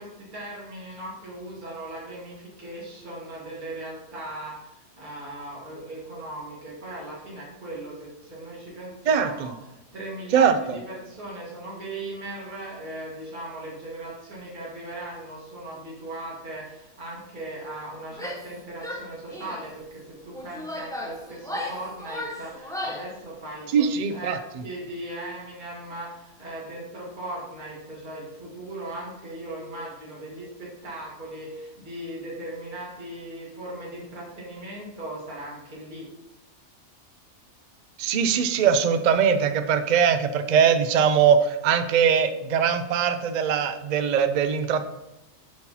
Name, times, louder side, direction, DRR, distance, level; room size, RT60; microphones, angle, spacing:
voice 1, 0.0-9.5 9.9-36.1, right 1 dB, 35° right, -5 dB, 2.0 m, -38 dB
voice 2, 9.1-9.5 10.3-10.8 23.7-24.6 38.0-44.8, right 7 dB, 60° right, 9 dB, 0.4 m, -21 dB
Female speech woman speaking / Yell, 18.1-18.5 18.8-19.7 20.3-23.1, left 1 dB, 5° left, 0.5 m, -35 dB
12.0 x 4.3 x 2.8 m, 0.93 s
omnidirectional pair, 1.5 m